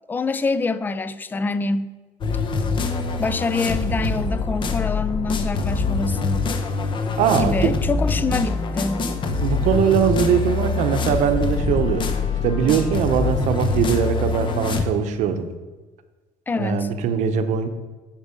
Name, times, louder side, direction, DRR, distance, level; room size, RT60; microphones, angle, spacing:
voice 1, 0.1-1.9 3.2-6.5 7.3-9.1 16.5-16.9, left 3 dB, 15° left, 14 dB, 0.4 m, -25 dB
sound 1, 2.2-14.8, left 4 dB, 40° left, 0.9 m, -24 dB
voice 2, 7.2-7.7 9.4-12.1 12.4-15.5 16.6-17.7, right 7 dB, 70° right, 9 dB, 0.8 m, -21 dB
8.2 x 5.2 x 5.2 m, 1.3 s
cardioid pair, 115°, 13 cm